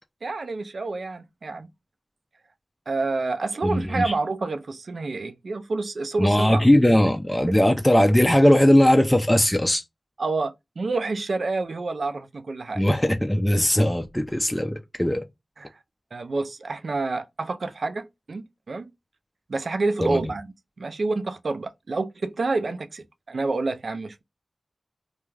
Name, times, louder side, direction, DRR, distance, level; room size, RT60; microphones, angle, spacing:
voice 1, 0.2-1.7 2.9-6.9 10.2-12.8 15.6-15.7 16.1-18.9 19.5-24.2, right 3 dB, 70° right, 0.4 m, -28 dB
voice 2, 3.6-4.1 6.2-9.8 12.8-15.2 20.0-20.2, left 1 dB, 10° left, 0.4 m, -19 dB
2.4 x 2.2 x 3.1 m
cardioid pair, 45°, 0 cm